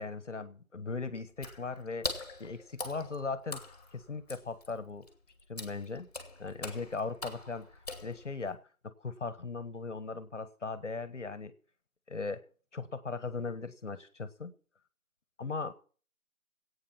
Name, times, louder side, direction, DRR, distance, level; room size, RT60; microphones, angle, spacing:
voice 1, 0.0-3.6 3.9-5.1 5.5-6.1 6.4-7.7 8.0-8.6 8.8-11.5 12.1-12.4 12.7-14.5 15.4-15.7, left 4 dB, 55° left, 1.5 m, -38 dB
Water / Splash splatter, 1.3-8.5, left 3 dB, 25° left, 2.2 m, -43 dB
16.0 x 9.0 x 5.8 m
figure-of-eight pair, 180°, 42 cm